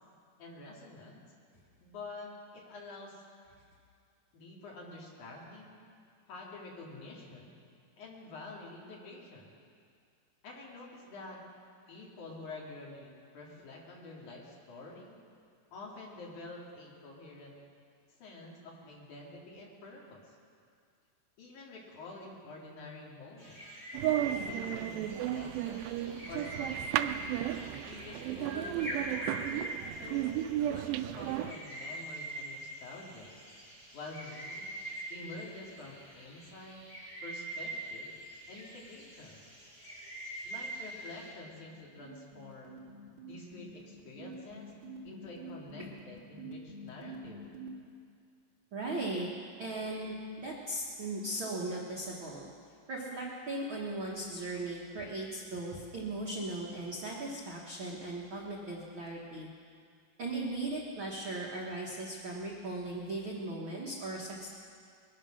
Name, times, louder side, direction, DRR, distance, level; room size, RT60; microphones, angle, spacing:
voice 1, 0.4-1.3 1.8-3.2 4.3-5.8 6.3-7.5 8.0-9.5 10.4-11.4 11.9-15.2 15.7-17.5 18.2-20.4 21.4-23.6 24.2-26.0 26.3-27.2 27.9-28.9 29.9-33.3 33.9-34.8 35.1-36.8 37.2-38.1 38.5-39.5 40.5-42.9 43.3-44.7 45.0-47.5, left 2 dB, 55° left, -3 dB, 3.6 m, -48 dB
sound 1, 23.4-41.3, right 1 dB, 20° left, 4.8 m, -43 dB
sound 2, 23.9-31.5, right 13 dB, 80° right, 2.3 m, -34 dB
sound 3, 41.6-47.7, right 2 dB, 35° right, 2.4 m, -48 dB
voice 2, 48.7-49.3 49.6-52.5 52.9-59.5 60.2-64.5, right 2 dB, 55° right, -3 dB, 1.4 m, -38 dB
21.5 x 9.9 x 6.4 m, 2.2 s
omnidirectional pair, 4.3 m